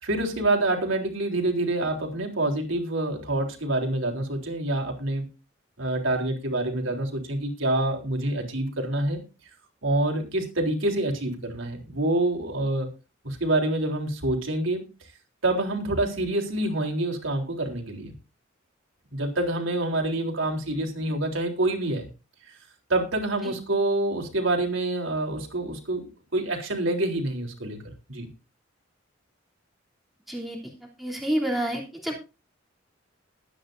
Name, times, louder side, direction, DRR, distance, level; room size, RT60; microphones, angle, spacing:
voice 1, 0.0-5.3 5.8-9.2 9.8-12.9 13.2-14.8 15.4-18.1 19.1-22.1 22.5-22.6 22.9-27.8 28.1-28.3, right 2 dB, 85° right, 1 dB, 3.8 m, -27 dB
voice 2, 30.3-30.6 31.0-32.2, right 1 dB, ahead, -3 dB, 3.1 m, -29 dB
21.5 x 9.4 x 2.7 m, 0.30 s
head